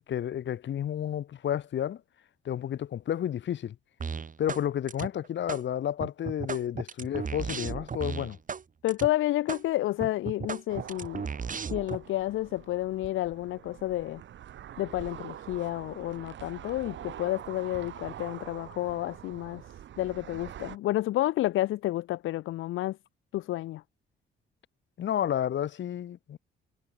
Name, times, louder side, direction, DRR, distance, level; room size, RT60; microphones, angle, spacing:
voice 1, 0.0-2.0 2.4-3.8 4.4-8.4 25.0-26.4, left 10 dB, 65° left, 6.5 m, -31 dB
sound 1, 4.0-4.6 4.9-5.6 6.0-8.6 8.9-9.1 9.5-9.6 10.0-12.0, right 6 dB, 40° right, 7.5 m, -35 dB
voice 2, 8.8-11.3 11.7-14.2 14.8-19.6 20.0-23.0 23.3-23.8, left 15 dB, 85° left, 3.0 m, -30 dB
sound 2, 10.7-20.8, right 11 dB, 70° right, 5.2 m, -45 dB
cardioid pair, 90°, 20 cm